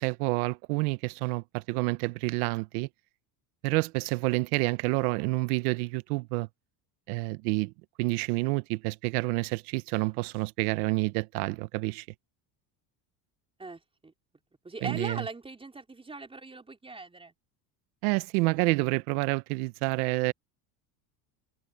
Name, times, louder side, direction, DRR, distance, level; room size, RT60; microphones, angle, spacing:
voice 1, 0.0-2.9 3.6-6.5 7.1-7.7 8.0-12.1 14.8-15.2 18.0-20.3, right 23 dB, 90° right, 0.8 m, -28 dB
voice 2, 13.6-14.1 14.6-17.3, right 3 dB, 10° right, 4.0 m, -40 dB
open air
cardioid pair, 125°, 43 cm